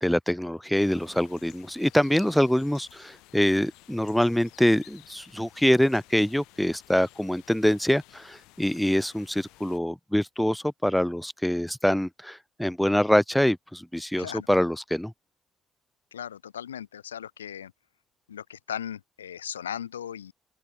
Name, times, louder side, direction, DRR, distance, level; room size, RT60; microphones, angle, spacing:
voice 1, 0.0-15.1, equal, 5° left, 0.7 m, -25 dB
sound 1, 0.7-9.8, left 21 dB, 65° left, 4.5 m, -54 dB
voice 2, 16.1-17.7 18.3-20.3, left 9 dB, 80° left, 0.8 m, -37 dB
open air
figure-of-eight pair, 45°, 0 cm